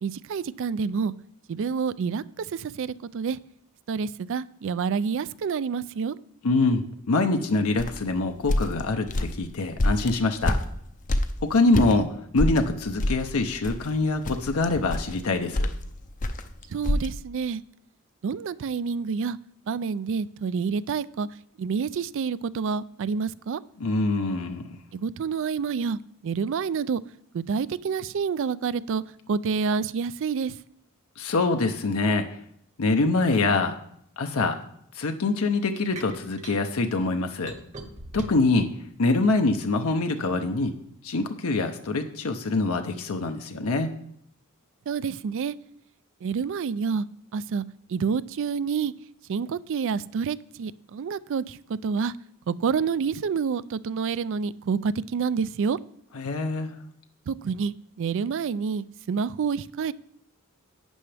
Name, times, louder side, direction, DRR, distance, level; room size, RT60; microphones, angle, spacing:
voice 1, 0.0-1.1 1.5-3.4 3.9-6.2 16.7-17.6 18.2-19.4 19.7-21.3 21.6-23.6 24.9-27.0 27.3-30.6 44.9-45.6 46.2-47.1 47.3-48.9 49.3-52.1 52.5-55.8 57.3-59.9, right 5 dB, 60° right, 19 dB, 0.3 m, -28 dB
voice 2, 6.4-10.6 11.4-15.7 23.8-24.6 31.2-32.4 32.8-33.8 34.2-34.6 34.9-37.6 38.1-38.7 39.0-40.8 41.0-43.9 56.1-56.8, left 3 dB, 70° left, 5 dB, 0.7 m, -24 dB
sound 1, 7.8-12.0 12.4-17.1, left 1 dB, 35° left, 0.6 m, -27 dB
sound 2, 35.9-36.6 37.5-38.6 39.1-40.0, right 2 dB, 30° right, 1.1 m, -40 dB
11.5 x 8.7 x 3.4 m, 0.70 s
head